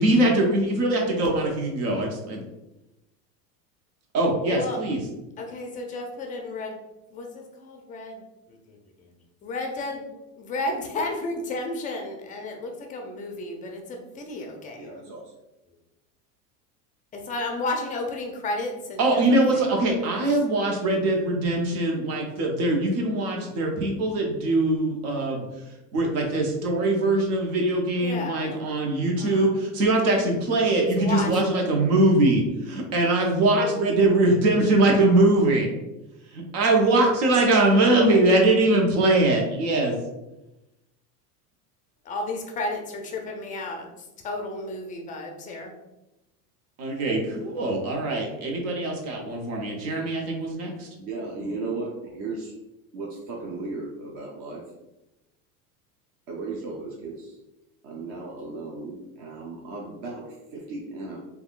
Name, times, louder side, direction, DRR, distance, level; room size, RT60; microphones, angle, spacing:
voice 1, 0.0-2.4 4.1-5.0 19.0-25.5 25.9-35.7 36.3-40.0 46.8-50.9, right 2 dB, 70° right, 0 dB, 1.0 m, -22 dB
voice 2, 4.5-4.8 5.4-6.8 7.1-9.1 9.4-15.1 17.1-20.2 28.0-28.7 29.2-29.5 30.9-31.4 42.0-45.7, left 2 dB, 20° left, 2 dB, 0.3 m, -33 dB
voice 3, 14.8-15.2 51.0-52.5 52.9-54.6 56.3-57.3 57.8-61.2, right 3 dB, 40° right, -2 dB, 0.6 m, -35 dB
3.5 x 2.3 x 2.4 m, 0.96 s
supercardioid pair, 105°, 47 cm